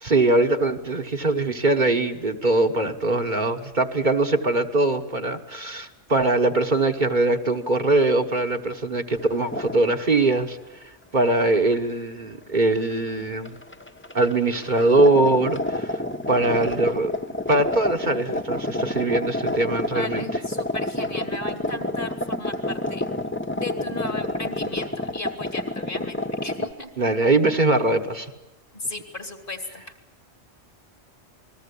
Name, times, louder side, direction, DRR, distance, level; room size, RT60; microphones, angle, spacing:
voice 1, 0.0-10.6 11.1-13.6 14.1-16.0 16.3-17.1 17.5-20.4 27.0-28.3, right 2 dB, 45° right, 4 dB, 1.4 m, -22 dB
sound 1, 9.2-9.9 10.2-10.4 11.7-11.8 12.9-13.1 13.4-26.7, left 1 dB, 10° left, 0.9 m, -29 dB
voice 2, 19.9-23.1 23.6-26.9 28.7-29.8, left 2 dB, 50° left, 7 dB, 2.9 m, -35 dB
28.0 x 20.5 x 8.4 m, 0.95 s
omnidirectional pair, 1.1 m